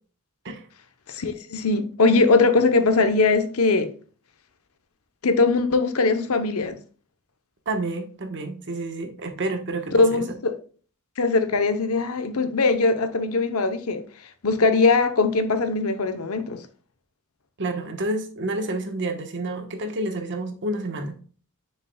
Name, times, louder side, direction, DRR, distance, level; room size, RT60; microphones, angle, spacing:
voice 1, 1.1-3.9 5.2-6.8 9.9-10.5 11.2-14.0 14.4-16.6, left 3 dB, 70° left, 0.8 m, -21 dB
voice 2, 7.7-10.4 17.6-21.2, right 2 dB, 55° right, 1.1 m, -29 dB
7.0 x 6.6 x 2.3 m
head